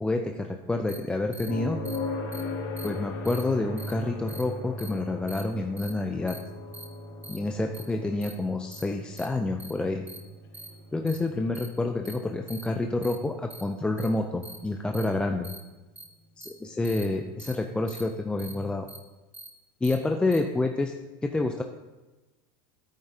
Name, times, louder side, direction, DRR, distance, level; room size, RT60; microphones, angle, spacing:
voice 1, 0.0-1.8 2.8-6.4 7.3-10.1 10.9-15.5 16.4-18.9 19.8-20.9 21.2-21.6, left 2 dB, 10° left, 4 dB, 0.4 m, -28 dB
sound 1, 0.9-1.0 1.3-1.5 1.8-2.0 2.3-2.4 2.8-2.9 3.2-3.4 3.8-3.9 4.3-4.4 4.8-4.9 5.3-5.4 5.8-5.9 6.3-6.4 6.7-6.8 7.2-7.4 7.7-7.8 8.2-8.3 8.7-8.8 9.2-9.3 9.6-9.7 10.1-10.2 10.5-10.7 11.1-11.2 11.5-11.7 12.0-12.1 12.5-12.6 13.0-13.2 13.5-13.6 14.0-14.1 14.4-14.6 14.9-15.0 15.4-15.6 16.0-16.1 16.4-16.5 16.8-17.0 17.4-17.5 17.9-18.0 18.4-18.5 18.9-19.0 19.3-19.5 19.8-19.9 20.3-20.4, right 2 dB, 15° right, 1.2 m, -44 dB
sound 2, 1.5-15.3 17.6-17.7, left 2 dB, 60° left, 3.1 m, -39 dB
10.5 x 8.8 x 2.7 m, 1.1 s
supercardioid pair, 125°, 12 cm